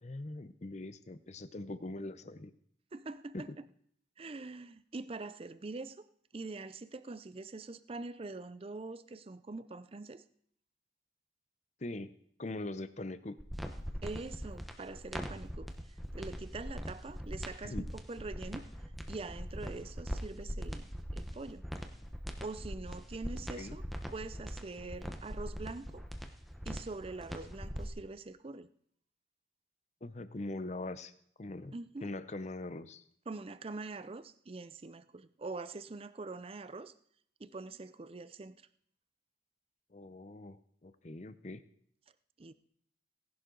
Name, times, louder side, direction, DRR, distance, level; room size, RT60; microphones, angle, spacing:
voice 1, 0.0-2.5 3.3-3.5 11.8-12.1 12.4-13.4 17.6-17.9 23.6-23.8 30.0-31.1 31.4-31.7 32.0-33.0 39.9-41.6, left 2 dB, 35° left, 13 dB, 0.7 m, -42 dB
voice 2, 2.9-3.6 4.2-6.0 6.3-10.2 14.0-15.7 16.1-18.7 19.1-21.6 22.4-23.8 24.1-26.0 26.7-28.7 31.7-32.1 33.3-36.9 37.4-38.6 42.4-42.5, right 3 dB, 30° right, 14 dB, 0.5 m, -44 dB
sound 1, 13.4-27.9, equal, ahead, 1.0 m, -41 dB
18.0 x 11.0 x 3.9 m, 0.65 s
head